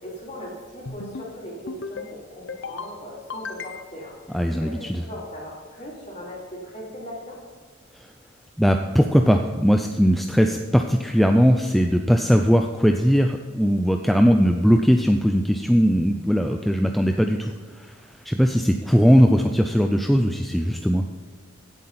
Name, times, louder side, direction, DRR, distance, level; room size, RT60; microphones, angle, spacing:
voice 1, 0.0-7.4, left 1 dB, 35° left, -4 dB, 3.7 m, -39 dB
sound 1, 0.9-1.3 1.7-2.1 2.5-2.9 3.3-4.1, left 4 dB, 65° left, 0.8 m, -35 dB
voice 2, 4.3-5.0 7.9-8.1 8.6-21.0, equal, ahead, 4 dB, 0.4 m, -19 dB
16.5 x 8.0 x 4.2 m, 1.5 s
head